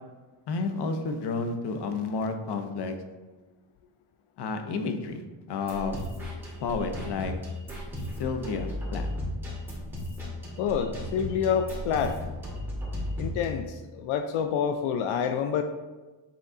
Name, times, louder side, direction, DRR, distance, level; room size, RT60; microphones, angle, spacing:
voice 1, 0.5-3.0 4.4-5.2 5.5-6.0 6.6-7.3 8.2-9.1, left 4 dB, 55° left, 7 dB, 0.8 m, -31 dB
sound 1, 5.7-13.5, left 1 dB, 5° right, 1.9 m, -35 dB
voice 2, 10.6-12.2 13.2-15.6, left 7 dB, 85° left, 7 dB, 0.6 m, -27 dB
7.0 x 3.8 x 3.7 m, 1.2 s
cardioid pair, 120°, 48 cm